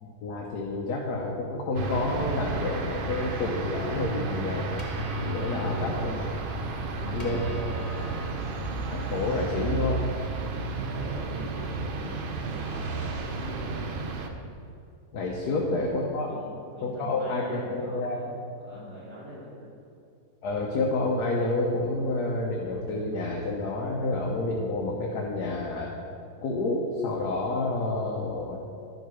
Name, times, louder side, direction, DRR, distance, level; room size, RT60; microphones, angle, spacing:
voice 1, 0.0-4.8 5.2-6.1 7.1-7.8 8.9-9.9 15.1-16.3 16.8-18.4 20.4-25.9 26.4-28.6, left 2 dB, 75° left, -1 dB, 1.4 m, -29 dB
sound 1, 1.7-14.3, right 3 dB, 55° right, 0.6 m, -32 dB
sound 2, 3.1-9.3, equal, 30° left, 0.8 m, -49 dB
voice 2, 5.4-6.4 6.7-8.1 10.3-14.0 15.4-15.8 16.3-19.7, equal, 80° right, -5 dB, 2.7 m, -42 dB
11.0 x 5.2 x 6.1 m, 2.4 s
omnidirectional pair, 1.7 m